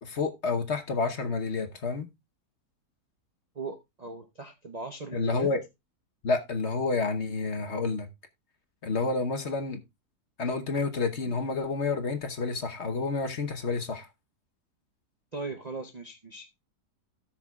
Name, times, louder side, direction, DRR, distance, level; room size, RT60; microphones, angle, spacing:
voice 1, 0.0-2.1 5.1-5.6 6.2-8.1 8.8-9.8 10.4-14.1, left 4 dB, 45° left, 1.2 m, -29 dB
voice 2, 3.5-5.5 15.3-16.6, right 3 dB, 35° right, 0.6 m, -39 dB
17.5 x 6.1 x 2.3 m
omnidirectional pair, 1.7 m